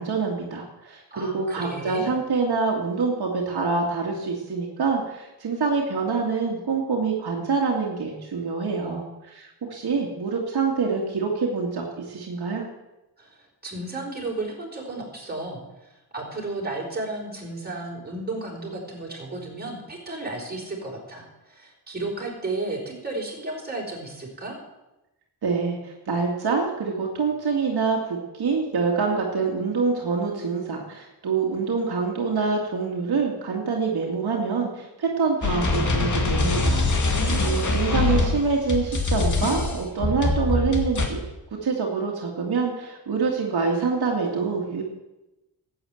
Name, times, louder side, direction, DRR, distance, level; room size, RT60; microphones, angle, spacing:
voice 1, 0.0-12.7 25.4-36.9 37.4-41.2 41.6-44.8, right 4 dB, 65° right, -1 dB, 2.3 m, -26 dB
voice 2, 1.1-2.1 13.2-24.6 37.1-38.4, right 2 dB, 25° right, -2 dB, 4.9 m, -33 dB
sound 1, 35.4-41.1, left 3 dB, 45° left, 2.4 m, -23 dB
13.0 x 8.8 x 7.9 m, 0.99 s
cardioid pair, 100°, 40 cm